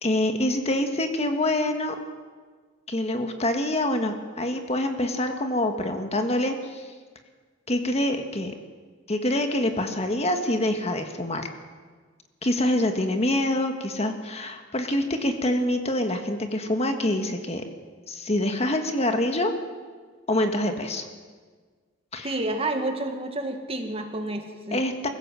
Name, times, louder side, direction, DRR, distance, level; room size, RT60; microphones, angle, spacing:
voice 1, 0.0-1.9 2.9-6.9 7.7-8.5 9.1-11.5 12.4-17.6 18.1-19.5 20.3-21.1 22.1-22.4 24.7-25.1, left 1 dB, 35° left, 5 dB, 1.7 m, -25 dB
voice 2, 22.2-24.8, right 2 dB, 30° right, 5 dB, 2.0 m, -29 dB
24.0 x 15.5 x 7.7 m, 1.5 s
head